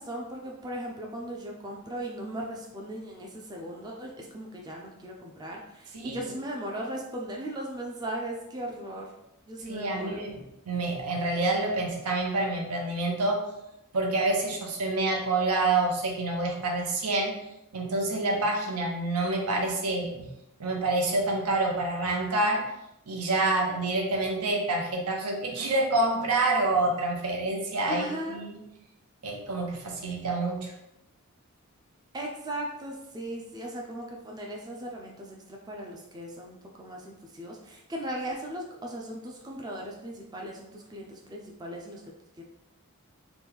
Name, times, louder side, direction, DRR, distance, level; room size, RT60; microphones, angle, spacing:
voice 1, 0.0-9.1 9.5-10.3 27.9-28.4 32.1-42.4, right 1 dB, 20° right, -1 dB, 0.3 m, -38 dB
voice 2, 5.9-6.3 9.7-13.5 13.9-17.4 17.7-20.3 20.6-22.7 23.1-28.6 29.2-30.7, right 2 dB, 85° right, 1 dB, 0.7 m, -27 dB
3.0 x 2.3 x 3.4 m, 0.85 s
head